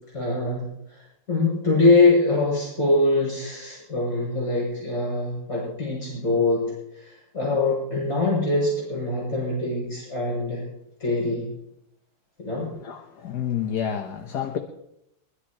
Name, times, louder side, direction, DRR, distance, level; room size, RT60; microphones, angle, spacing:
voice 1, 0.1-1.0 1.3-6.6 6.9-10.6 11.0-11.5 12.4-12.7, left 2 dB, 40° left, -5 dB, 7.9 m, -23 dB
voice 2, 12.8-14.6, left 9 dB, 60° left, 4 dB, 1.6 m, -29 dB
24.0 x 13.0 x 3.1 m, 0.78 s
omnidirectional pair, 2.1 m